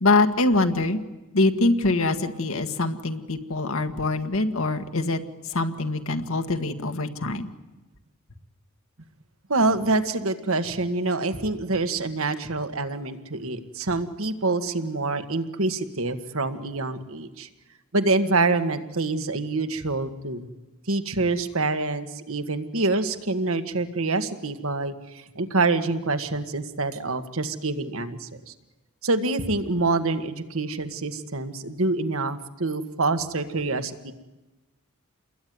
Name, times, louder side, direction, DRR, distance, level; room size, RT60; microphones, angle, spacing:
voice 1, 0.0-1.0 1.3-5.2 5.5-7.5, left 2 dB, 75° left, 6 dB, 1.7 m, -24 dB
voice 2, 9.5-17.5 17.9-20.5 20.9-28.5 29.0-34.1, right 3 dB, 80° right, 9 dB, 1.7 m, -26 dB
28.0 x 21.5 x 9.5 m, 1.1 s
head